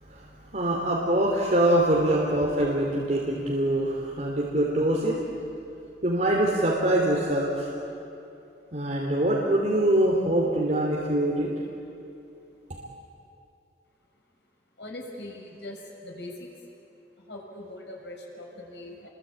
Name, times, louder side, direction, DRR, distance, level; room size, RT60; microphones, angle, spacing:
voice 1, 0.5-5.2 6.0-7.7 8.7-11.5, right 1 dB, 45° right, -2 dB, 3.0 m, -24 dB
voice 2, 14.8-16.6 17.2-19.1, left 1 dB, 85° left, 0 dB, 6.4 m, -41 dB
29.0 x 23.0 x 8.8 m, 2.7 s
head